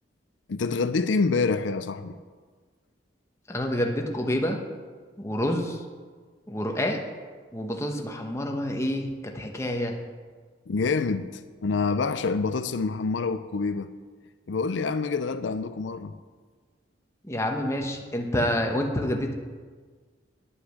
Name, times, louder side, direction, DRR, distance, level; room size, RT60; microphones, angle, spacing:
voice 1, 0.5-2.2 10.7-13.9 14.5-16.1, left 4 dB, 80° left, 0.5 m, -27 dB
voice 2, 3.5-4.6 5.2-5.8 6.5-7.0 7.5-10.0 17.2-19.3, left 1 dB, 15° left, 1.1 m, -28 dB
10.0 x 8.6 x 6.5 m
head